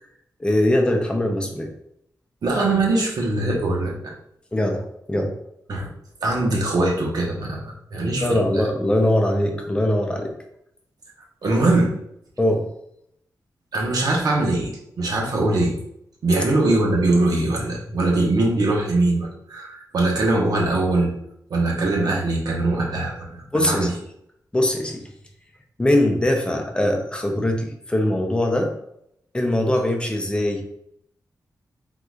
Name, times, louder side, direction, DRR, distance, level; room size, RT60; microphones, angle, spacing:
voice 1, 0.4-1.7 4.5-5.3 8.2-10.3 12.4-12.7 23.5-23.9 24.5-25.0 25.8-28.7 29.3-30.6, left 1 dB, 15° left, 2 dB, 0.6 m, -21 dB
voice 2, 2.4-4.1 5.7-5.9 6.2-8.6 11.4-12.0 13.7-15.8 16.2-21.1 21.5-23.9, right 2 dB, 70° right, -1 dB, 1.1 m, -22 dB
4.7 x 3.8 x 2.4 m, 0.75 s
wide cardioid pair, 165°, 7 cm